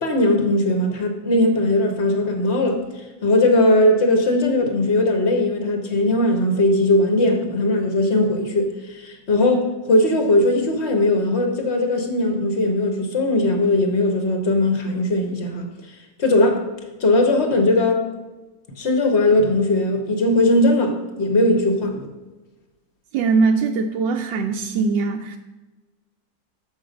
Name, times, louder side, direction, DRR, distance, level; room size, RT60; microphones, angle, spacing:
voice 1, 0.0-2.8 3.2-15.7 16.2-16.6 17.0-18.1 18.8-22.1, left 1 dB, 40° left, 4 dB, 1.3 m, -19 dB
voice 2, 23.1-25.4, right 4 dB, 85° right, 3 dB, 1.3 m, -21 dB
7.7 x 6.2 x 5.2 m, 1.1 s
omnidirectional pair, 1.9 m